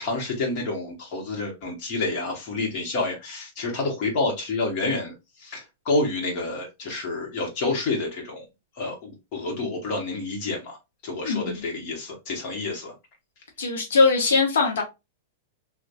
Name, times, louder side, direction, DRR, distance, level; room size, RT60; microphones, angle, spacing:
voice 1, 0.0-8.4 8.7-10.8 11.0-12.9, left 3 dB, 40° left, 1.6 m, -29 dB
voice 2, 11.2-11.6 13.6-14.8, left 4 dB, 90° left, 1.1 m, -21 dB
3.2 x 2.8 x 2.7 m
supercardioid pair, 150°, 0 cm